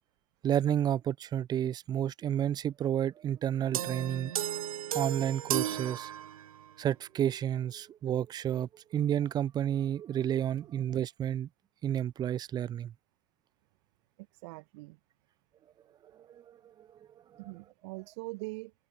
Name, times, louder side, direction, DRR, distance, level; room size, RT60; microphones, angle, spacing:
voice 1, 0.4-4.3 4.9-6.1 6.8-11.5 11.8-12.9 16.5-16.6, right 10 dB, 20° right, 0.6 m, -31 dB
sound 1, 3.7-6.7, right 10 dB, 70° right, 0.6 m, -34 dB
voice 2, 14.2-15.0 17.4-18.7, right 25 dB, 50° right, 1.5 m, -43 dB
figure-of-eight pair, 95°, 19 cm